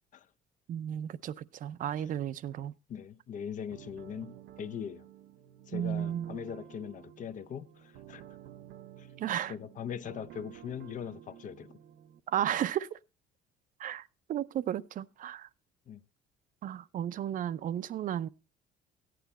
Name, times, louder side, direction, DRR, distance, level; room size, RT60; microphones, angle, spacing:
voice 1, 0.7-2.7 5.7-6.4 9.2-9.5 12.3-13.0 13.8-15.5 16.6-18.3, right 10 dB, 50° right, 0.5 m, -34 dB
voice 2, 2.9-5.0 5.7-8.2 9.0-9.1 9.5-11.8 15.9-16.0, left 8 dB, 50° left, 0.6 m, -41 dB
sound 1, 3.7-12.2, right 11 dB, 80° right, 0.8 m, -51 dB
14.0 x 9.2 x 4.1 m
cardioid pair, 110°, 17 cm